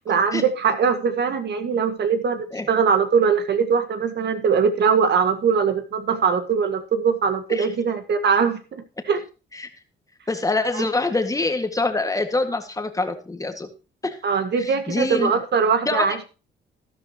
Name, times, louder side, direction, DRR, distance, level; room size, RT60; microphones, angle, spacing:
voice 1, 0.1-9.2 10.7-10.8 14.2-16.2, right 6 dB, 60° right, 8 dB, 1.9 m, -21 dB
voice 2, 10.3-13.7 14.0-14.2 14.6-15.3 15.9-16.2, left 3 dB, 15° left, 7 dB, 1.9 m, -25 dB
13.0 x 11.5 x 3.0 m, 0.32 s
cardioid pair, 90°, 20 cm